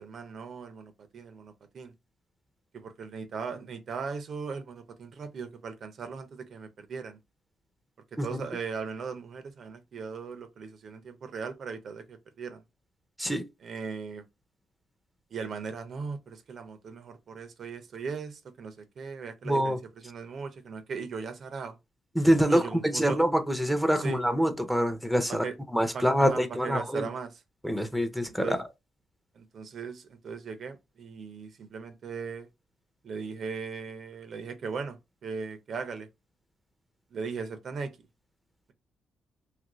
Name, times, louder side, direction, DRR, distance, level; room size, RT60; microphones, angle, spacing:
voice 1, 0.0-1.9 2.7-7.2 8.2-12.6 13.6-14.2 15.3-19.8 20.0-21.8 22.5-23.2 24.0-24.2 25.3-25.5 25.9-27.3 28.4-28.6 29.3-32.5 33.0-36.1 37.1-37.9, right 5 dB, 55° right, 0.5 m, -38 dB
voice 2, 19.4-19.8 22.1-25.4 25.7-27.1 27.6-28.7, equal, ahead, 0.6 m, -25 dB
2.9 x 2.5 x 3.0 m
cardioid pair, 90°, 0 cm